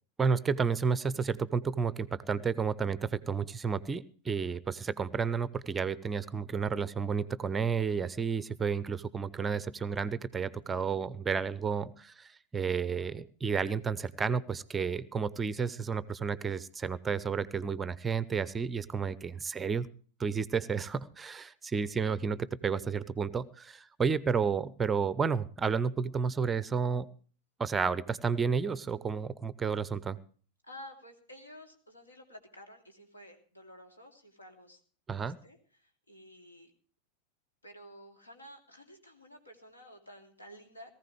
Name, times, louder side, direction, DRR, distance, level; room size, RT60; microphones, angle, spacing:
voice 1, 0.2-19.9 20.2-27.1 27.6-30.2 35.1-35.4, right 5 dB, 15° right, 18 dB, 0.5 m, -31 dB
voice 2, 30.6-34.8 35.2-36.7 37.6-40.9, equal, 75° left, 4 dB, 2.6 m, -52 dB
18.5 x 15.0 x 3.2 m, 0.43 s
figure-of-eight pair, 90°, 0 cm